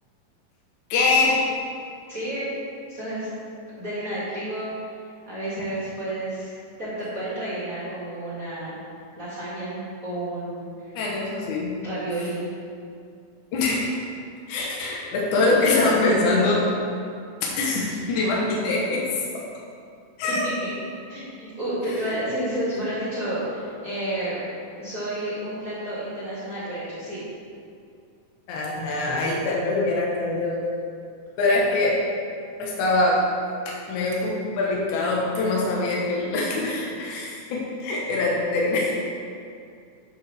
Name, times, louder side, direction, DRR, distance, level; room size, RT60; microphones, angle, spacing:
voice 1, 0.9-1.4 11.0-11.7 13.5-13.8 14.5-16.6 17.6-19.0 19.3-19.4 20.2-20.5 22.1-22.2 28.5-30.6 31.4-32.0 32.6-33.2 33.7-38.9, left 2 dB, 70° left, -3 dB, 2.4 m, -23 dB
voice 2, 2.1-2.5 2.9-3.3 3.8-4.7 5.3-6.5 6.8-8.8 9.2-11.0 11.8-12.4 20.3-20.4 21.1-24.4 24.8-27.3, right 1 dB, 30° right, -11 dB, 2.3 m, -31 dB
11.0 x 7.2 x 3.4 m, 2.4 s
omnidirectional pair, 3.8 m